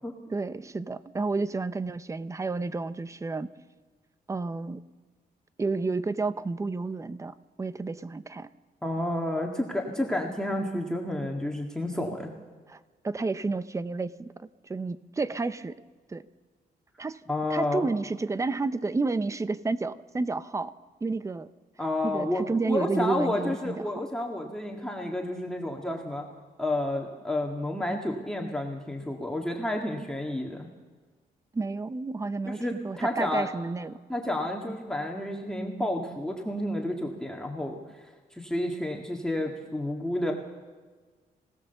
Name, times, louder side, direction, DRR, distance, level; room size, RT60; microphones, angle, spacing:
voice 1, 0.3-3.5 4.3-4.8 5.6-8.5 12.7-12.8 13.0-15.7 16.1-16.2 17.0-17.2 17.5-20.7 21.0-21.5 22.0-23.8 31.5-34.0, right 3 dB, 20° right, 14 dB, 0.7 m, -31 dB
voice 2, 8.8-12.3 17.3-17.9 21.8-26.3 26.6-30.7 32.5-33.5 34.1-40.3, left 1 dB, 5° left, 0 dB, 1.9 m, -30 dB
25.0 x 17.5 x 6.9 m, 1.4 s
cardioid pair, 120°, 16 cm